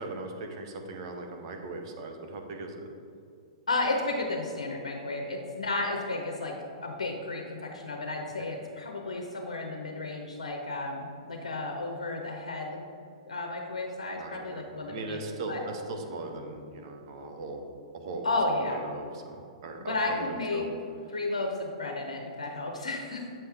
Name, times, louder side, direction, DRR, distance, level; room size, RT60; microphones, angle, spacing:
voice 1, 0.0-2.8 14.2-14.6 14.9-17.6 17.9-18.3 18.5-20.7, right 2 dB, 55° right, 4 dB, 0.9 m, -39 dB
voice 2, 3.7-6.5 6.8-12.8 13.3-15.2 15.5-15.6 18.2-18.8 19.9-20.6 21.1-23.3, left 2 dB, 80° left, 1 dB, 0.8 m, -32 dB
7.1 x 5.6 x 3.5 m, 2.4 s
hypercardioid pair, 115°, 3 cm